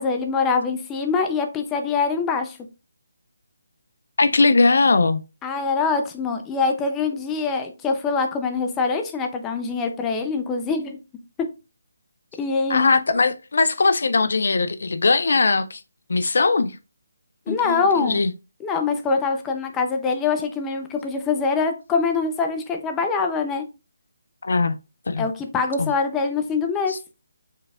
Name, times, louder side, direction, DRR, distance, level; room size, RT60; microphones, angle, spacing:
voice 1, 0.0-2.6 5.4-11.0 12.4-12.8 17.5-18.2 18.6-23.6 25.2-26.9, left 4 dB, 10° left, 0.5 m, -24 dB
voice 2, 4.2-5.2 12.7-15.8 16.1-16.8 17.5-18.3 24.4-24.8 25.1-25.3 25.8-25.9 26.9-27.0, left 3 dB, 65° left, 0.3 m, -20 dB
4.6 x 3.2 x 2.3 m
figure-of-eight pair, 155°, 0 cm